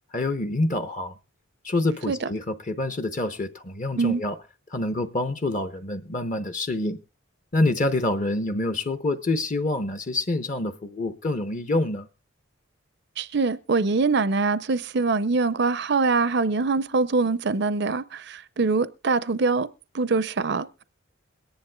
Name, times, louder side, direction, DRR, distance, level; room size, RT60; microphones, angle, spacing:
voice 1, 0.1-1.1 1.6-4.4 4.7-7.0 7.5-12.1, left 2 dB, 35° left, 0.7 m, -26 dB
voice 2, 13.2-19.7 19.9-20.8, right 4 dB, 55° right, 0.5 m, -24 dB
22.0 x 10.5 x 2.2 m
head